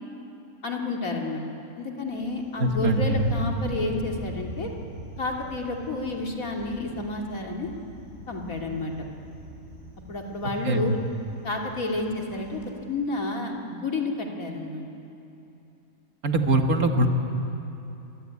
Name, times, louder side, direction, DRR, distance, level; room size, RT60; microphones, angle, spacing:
voice 1, 0.6-1.4 1.8-4.7 5.2-7.7 8.3-8.9 10.1-10.9 11.4-14.8, left 2 dB, 70° left, 0 dB, 3.2 m, -30 dB
Thunder, 2.1-12.7, right 1 dB, 45° right, 6.0 m, -40 dB
voice 2, 2.6-3.3 10.6-10.8 16.2-17.1, right 1 dB, 80° right, 4 dB, 2.3 m, -22 dB
25.5 x 23.0 x 9.8 m, 2.9 s
omnidirectional pair, 1.5 m